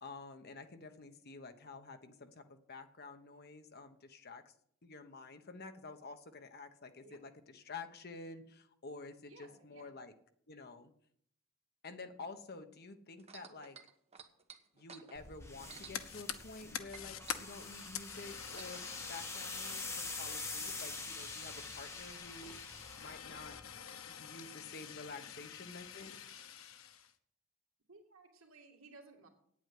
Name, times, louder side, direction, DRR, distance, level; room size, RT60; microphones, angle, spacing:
voice 1, 0.0-4.5 4.8-10.1 10.5-10.9 11.8-13.8 14.7-18.8 19.1-22.5 23.0-23.6 24.1-26.1, left 3 dB, 50° left, 7 dB, 1.1 m, -50 dB
voice 2, 9.3-10.0 25.2-25.3 27.9-29.3, right 3 dB, 80° right, 2 dB, 2.3 m, -58 dB
sound 1, 13.2-16.6 16.9-18.9 19.7-19.8, right 6 dB, 30° right, 1.1 m, -54 dB
sound 2, 15.1-23.8, left 3 dB, 15° left, 1.1 m, -46 dB
Fire, 15.6-27.1, left 8 dB, 85° left, 0.9 m, -47 dB
9.1 x 8.6 x 7.8 m, 0.68 s
head